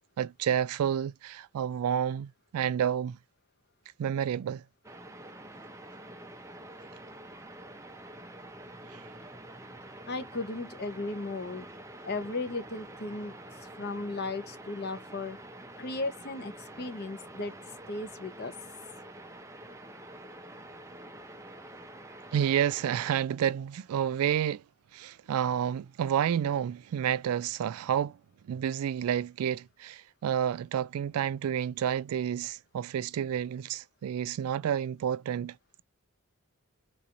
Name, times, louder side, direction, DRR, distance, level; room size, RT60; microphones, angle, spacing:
voice 1, 0.2-3.2 4.0-4.6 8.9-9.0 22.3-24.6 24.9-28.2 28.5-35.8, right 9 dB, 80° right, 0.3 m, -30 dB
sound 1, 4.8-23.1, right 1 dB, 15° right, 0.5 m, -47 dB
voice 2, 10.1-11.7 12.0-13.4 13.8-15.4 15.8-17.5 17.9-18.6, left 3 dB, 45° left, 0.8 m, -35 dB
3.8 x 3.0 x 2.4 m
head